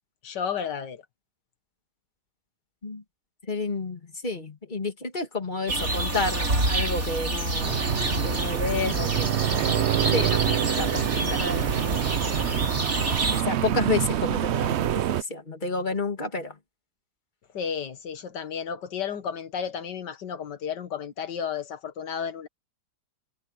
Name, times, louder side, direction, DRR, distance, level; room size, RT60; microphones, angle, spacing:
voice 1, 0.2-1.0 17.5-22.5, left 7 dB, 90° left, 2.0 m, -32 dB
voice 2, 3.4-7.9 8.2-11.7 13.3-16.6, left 3 dB, 25° left, 2.7 m, -31 dB
sound 1, 5.7-13.4, right 2 dB, 50° right, 4.8 m, -28 dB
sound 2, 7.6-15.2, right 11 dB, 70° right, 0.6 m, -26 dB
omnidirectional pair, 1.8 m